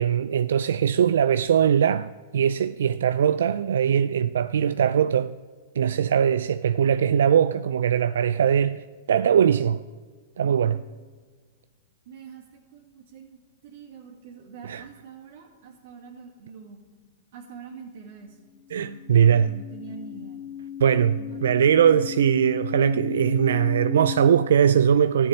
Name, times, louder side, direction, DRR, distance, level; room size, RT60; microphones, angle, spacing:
voice 1, 0.0-5.3 5.8-9.8 10.4-10.8 14.6-14.8 18.7-19.5 20.8-25.3, right 8 dB, 80° right, 0.3 m, -21 dB
voice 2, 10.4-10.8 12.1-16.8 17.3-18.4 18.7-20.4 21.1-22.0, right 5 dB, 65° right, 2.4 m, -44 dB
sound 1, 18.6-24.4, left 9 dB, 30° left, 1.4 m, -36 dB
12.5 x 7.1 x 9.6 m
hypercardioid pair, 130°, 0 cm